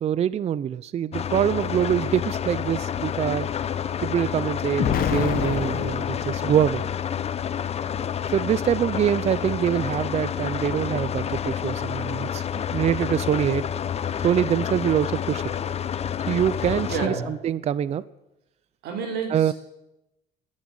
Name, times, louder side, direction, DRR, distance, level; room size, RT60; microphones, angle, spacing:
voice 1, 0.0-3.5 4.0-6.8 8.3-13.6 14.2-15.4 16.3-18.0 19.3-19.5, right 9 dB, 40° right, 19 dB, 0.5 m, -24 dB
sound 1, 1.1-17.1, left 8 dB, 40° left, 0.7 m, -29 dB
Explosion, 4.8-6.9, left 9 dB, 60° left, 1.1 m, -27 dB
voice 2, 16.9-17.3 18.8-19.5, right 5 dB, 75° right, 4 dB, 3.8 m, -29 dB
12.5 x 10.5 x 8.7 m, 0.92 s
cardioid pair, 110°, 17 cm